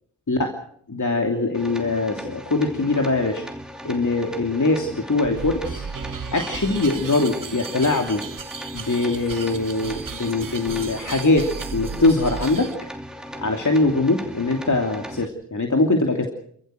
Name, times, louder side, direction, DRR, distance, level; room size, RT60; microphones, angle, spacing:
voice 1, 0.9-3.4 3.8-5.8 6.3-8.2 8.7-12.7 13.4-16.3, left 2 dB, 45° left, 3 dB, 3.0 m, -22 dB
sound 1, 1.5-15.3, equal, ahead, 2.7 m, -38 dB
sound 2, 5.2-12.8, right 5 dB, 45° right, 1.3 m, -35 dB
29.0 x 14.5 x 6.5 m, 0.66 s
cardioid pair, 40°, 43 cm